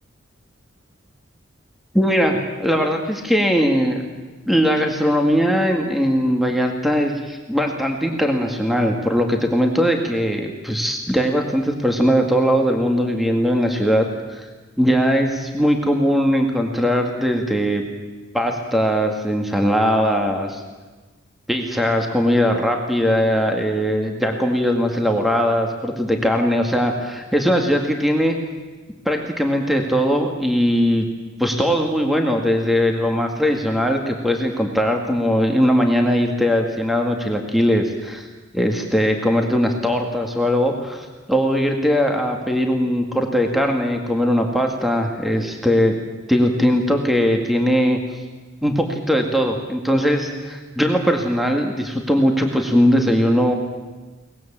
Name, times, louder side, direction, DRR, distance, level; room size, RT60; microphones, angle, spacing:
voice 1, 1.9-4.0 4.5-14.1 14.3-14.5 14.8-17.8 18.3-20.6 21.5-28.4 29.1-31.1 31.4-38.3 38.5-45.9 46.3-48.0 48.6-53.5, equal, ahead, 2 dB, 1.9 m, -20 dB
23.5 x 19.5 x 7.4 m, 1.3 s
head